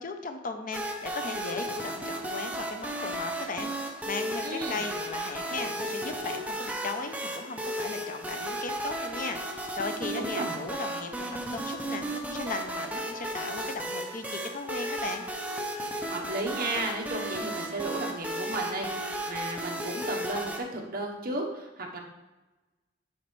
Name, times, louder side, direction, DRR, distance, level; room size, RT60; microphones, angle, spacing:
voice 1, 0.0-15.2, left 3 dB, 45° left, 7 dB, 0.6 m, -37 dB
sound 1, 0.7-20.6, right 1 dB, 10° right, 0.7 m, -34 dB
voice 2, 4.4-4.8 10.2-10.5 16.1-22.0, right 2 dB, 50° right, 1 dB, 1.0 m, -34 dB
10.0 x 4.2 x 3.2 m, 1.1 s
head